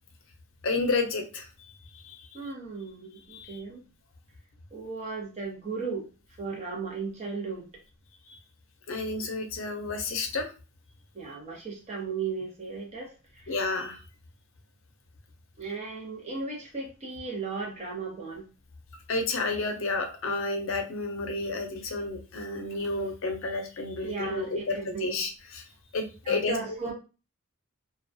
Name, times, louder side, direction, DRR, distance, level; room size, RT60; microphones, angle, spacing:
voice 1, 0.6-1.5 2.0-2.4 3.3-3.6 8.9-10.5 13.5-14.0 19.1-25.6 25.9-26.6, left 3 dB, 60° left, 5 dB, 0.5 m, -31 dB
voice 2, 2.3-3.8 4.7-6.1 6.4-7.7 11.1-13.5 15.6-18.4 24.0-25.2 26.3-26.9, right 4 dB, 30° right, -1 dB, 0.8 m, -36 dB
2.3 x 2.2 x 2.6 m, 0.33 s
head